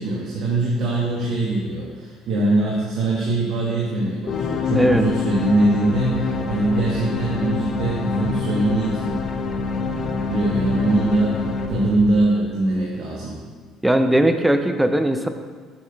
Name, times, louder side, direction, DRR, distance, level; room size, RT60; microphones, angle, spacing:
voice 1, 0.0-9.0 10.3-11.3 11.7-13.4, right 2 dB, 65° right, -4 dB, 1.1 m, -22 dB
sound 1, 4.3-12.7, left 4 dB, 45° left, 0.6 m, -26 dB
voice 2, 4.7-5.0 13.8-15.3, right 1 dB, 5° right, 7 dB, 0.5 m, -18 dB
7.2 x 5.5 x 3.3 m, 1.5 s
cardioid pair, 105°, 0 cm